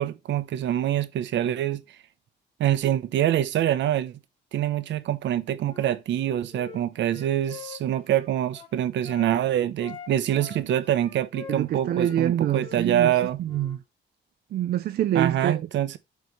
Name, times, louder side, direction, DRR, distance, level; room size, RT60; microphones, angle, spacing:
voice 1, 0.0-1.8 2.6-4.2 4.5-13.4 15.1-16.0, right 11 dB, 70° right, 0.9 m, -25 dB
Wind instrument woodwind instrument, 5.6-9.3 9.8-12.2 12.5-13.8, left 6 dB, 30° left, 2.0 m, -45 dB
voice 2, 11.5-13.1 13.4-13.8 14.5-15.6, right 11 dB, 55° right, 0.5 m, -25 dB
8.1 x 3.2 x 5.2 m
cardioid pair, 175°, 19 cm